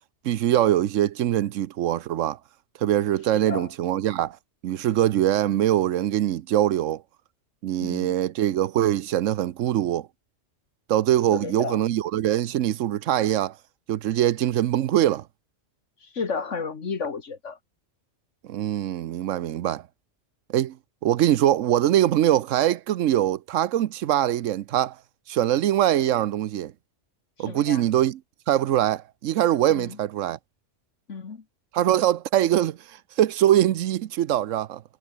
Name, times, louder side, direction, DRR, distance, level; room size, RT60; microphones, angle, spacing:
voice 1, 0.2-2.4 2.8-4.4 4.6-7.0 7.6-10.1 10.9-13.6 13.9-15.3 18.4-19.8 20.5-20.8 21.0-25.0 25.3-26.7 27.4-28.2 28.5-30.4 31.7-34.8, right 12 dB, 90° right, 1.1 m, -23 dB
voice 2, 3.3-3.7 7.8-8.1 11.3-11.8 16.0-17.6 27.5-27.8 29.7-30.0 31.1-31.4, left 5 dB, 75° left, 2.1 m, -32 dB
omnidirectional pair, 1.3 m